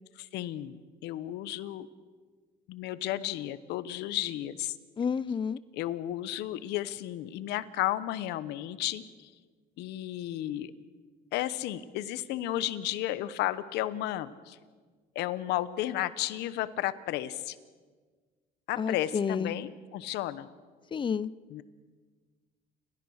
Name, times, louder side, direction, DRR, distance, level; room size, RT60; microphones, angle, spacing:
voice 1, 0.2-1.9 2.7-4.8 5.7-9.3 9.8-10.7 11.3-14.6 15.1-17.6 18.7-20.5 21.5-21.6, left 14 dB, 85° left, 15 dB, 1.0 m, -33 dB
voice 2, 5.0-5.6 18.8-19.5 20.9-21.3, left 6 dB, 30° left, 20 dB, 0.5 m, -30 dB
30.0 x 13.5 x 6.4 m, 1.5 s
cardioid pair, 110°, 17 cm